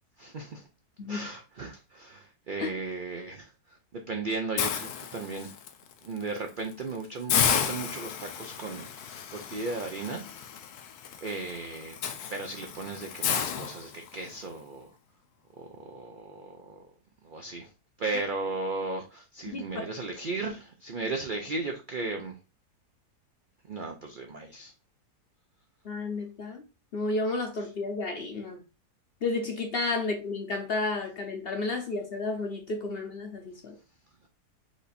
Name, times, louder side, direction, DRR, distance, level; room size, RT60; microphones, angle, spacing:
voice 1, 0.2-0.7 1.1-5.5 6.0-10.5 11.2-11.9 12.3-14.9 15.6-16.8 17.2-17.7 18.0-22.4 23.6-24.7, right 3 dB, 75° right, 0.4 m, -36 dB
Hiss, 4.6-5.7 6.2-6.4 6.7-6.8 7.3-14.4, left 8 dB, 75° left, 1.1 m, -32 dB
voice 2, 19.5-19.9 25.8-26.6 26.9-28.6 29.2-33.7, left 3 dB, 50° left, 0.7 m, -32 dB
4.9 x 2.6 x 4.1 m
omnidirectional pair, 1.7 m